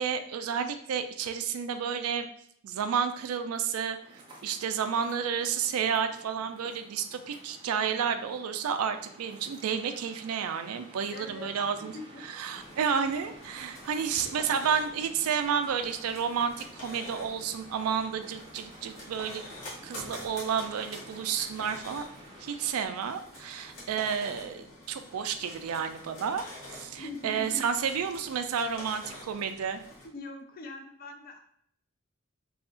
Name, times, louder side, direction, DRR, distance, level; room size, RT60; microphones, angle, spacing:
voice 1, 0.0-2.3 2.6-11.9 12.3-19.4 19.8-22.1 22.4-29.8, right 7 dB, 90° right, 8 dB, 0.4 m, -31 dB
sound 1, 4.0-22.9, right 1 dB, 20° right, 0.5 m, -52 dB
voice 2, 11.1-11.5 11.8-12.3 13.9-14.0 20.0-20.1 26.9-27.7 30.0-31.4, left 2 dB, 45° left, 4 dB, 0.4 m, -42 dB
sound 2, 12.5-30.1, left 1 dB, 75° left, 1.2 m, -47 dB
2.8 x 2.4 x 3.7 m, 0.66 s
head